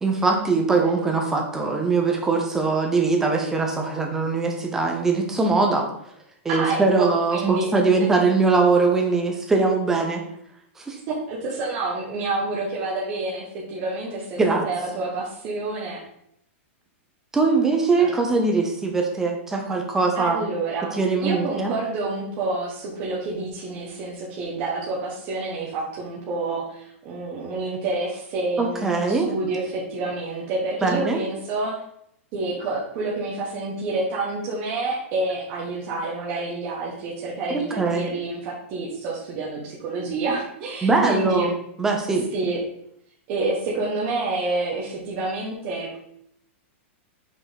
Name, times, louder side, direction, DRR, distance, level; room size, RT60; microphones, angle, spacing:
voice 1, 0.0-5.9 6.4-10.2 10.8-11.0 14.4-14.7 17.3-20.4 20.9-21.7 28.6-29.3 30.8-31.2 37.5-38.1 40.8-41.5 41.8-42.3, right 3 dB, 5° right, 2 dB, 0.7 m, -21 dB
voice 2, 6.5-7.7 11.1-16.0 18.0-18.1 20.1-20.9 21.2-31.7 32.3-41.5 42.3-42.6 43.3-46.0, right 3 dB, 25° right, -4 dB, 1.1 m, -28 dB
5.4 x 5.2 x 4.1 m, 0.73 s
supercardioid pair, 175°, 7 cm